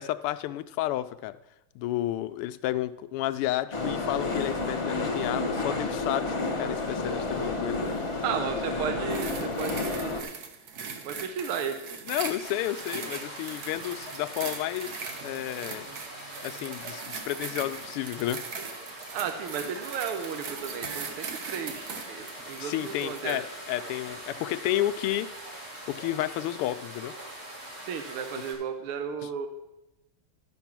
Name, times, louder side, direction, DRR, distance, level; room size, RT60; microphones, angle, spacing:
voice 1, 0.0-1.4 1.7-7.8 12.1-16.0 16.4-18.4 22.6-25.3 25.9-27.1 29.2-29.3, left 14 dB, 85° left, 13 dB, 1.5 m, -31 dB
sound 1, 3.7-10.2, left 3 dB, 30° left, 0.5 m, -30 dB
voice 2, 8.2-10.3 11.0-11.8 19.1-23.4 27.8-29.5, right 7 dB, 80° right, 6 dB, 1.7 m, -34 dB
sound 2, 9.1-23.4 24.1-24.2, right 5 dB, 55° right, 1.3 m, -40 dB
sound 3, 12.4-28.5, right 1 dB, 30° right, 3.6 m, -43 dB
11.5 x 6.1 x 5.9 m, 0.93 s
omnidirectional pair, 2.4 m